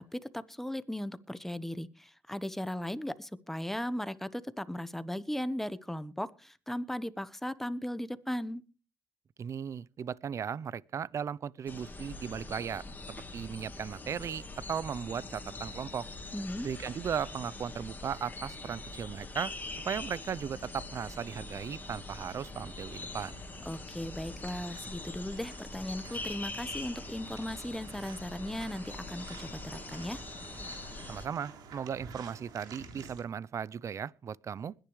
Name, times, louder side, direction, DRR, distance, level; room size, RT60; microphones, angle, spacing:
voice 1, 0.0-8.6 16.3-16.7 23.7-30.2, left 1 dB, 5° left, 1.1 m, -37 dB
voice 2, 9.4-12.8 13.3-16.1 16.6-23.4 31.1-34.8, right 7 dB, 45° right, 0.6 m, -37 dB
sound 1, 11.7-31.3, left 2 dB, 25° left, 2.7 m, -43 dB
sound 2, 21.0-33.2, right 5 dB, 80° right, 3.7 m, -52 dB
21.0 x 10.5 x 3.2 m
cardioid pair, 85°, 7 cm